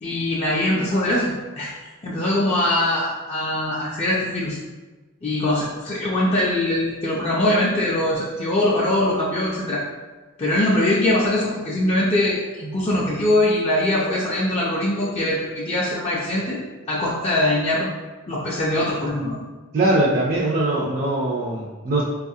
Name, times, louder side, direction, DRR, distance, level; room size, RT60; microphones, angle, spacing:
voice 1, 0.0-4.6 5.2-9.8 10.4-16.6 16.9-17.9 18.3-19.3, left 1 dB, 30° left, -6 dB, 0.4 m, -22 dB
voice 2, 19.7-22.0, right 2 dB, 40° right, -5 dB, 0.5 m, -21 dB
4.1 x 2.3 x 2.7 m, 1.3 s
head